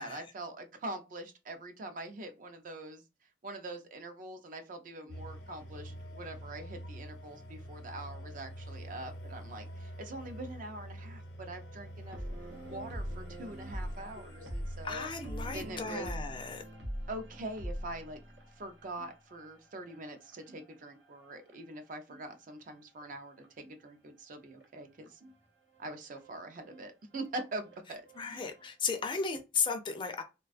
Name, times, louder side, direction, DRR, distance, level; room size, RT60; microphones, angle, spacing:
voice 1, 0.0-3.0 3.4-12.2 12.7-15.1 15.5-16.1 17.1-18.2 18.6-25.2 25.8-28.4, right 2 dB, 50° right, 0.4 m, -43 dB
sound 1, 5.1-15.8, equal, 85° left, 0.7 m, -46 dB
sound 2, 12.0-22.3 22.7-23.9 24.6-24.7 25.0-25.4 25.7-29.1, equal, 80° right, 0.7 m, -44 dB
voice 2, 14.8-16.6 28.2-30.2, left 5 dB, 25° left, 0.4 m, -35 dB
2.3 x 2.2 x 2.4 m
head